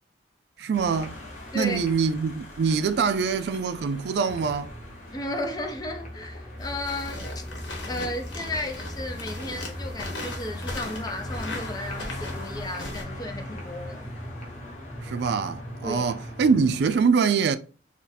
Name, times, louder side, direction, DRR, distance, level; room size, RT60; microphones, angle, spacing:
voice 1, 0.6-1.2 1.5-4.7 15.0-17.6, right 5 dB, 65° right, 0.3 m, -24 dB
sound 1, 0.7-17.0, left 2 dB, 40° left, 0.8 m, -44 dB
sound 2, 4.2-16.8, equal, ahead, 0.8 m, -39 dB
voice 2, 5.1-14.1 15.8-16.0, left 1 dB, 20° left, 0.5 m, -34 dB
sound 3, 6.6-13.0, left 2 dB, 85° left, 1.0 m, -39 dB
2.7 x 2.5 x 3.9 m
head